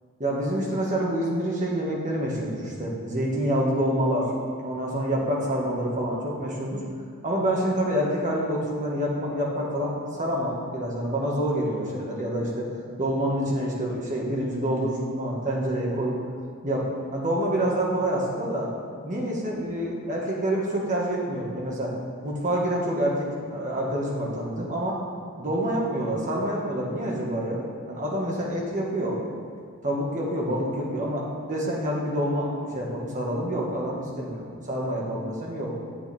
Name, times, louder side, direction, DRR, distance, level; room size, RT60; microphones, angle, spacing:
voice 1, 0.2-4.3 4.6-6.8 7.2-12.7 13.0-16.1 16.6-18.7 19.0-21.9 22.2-25.0 25.4-27.6 27.9-29.2 29.8-35.7, right 1 dB, 35° right, -3 dB, 1.8 m, -27 dB
9.4 x 7.7 x 4.5 m, 2.1 s
head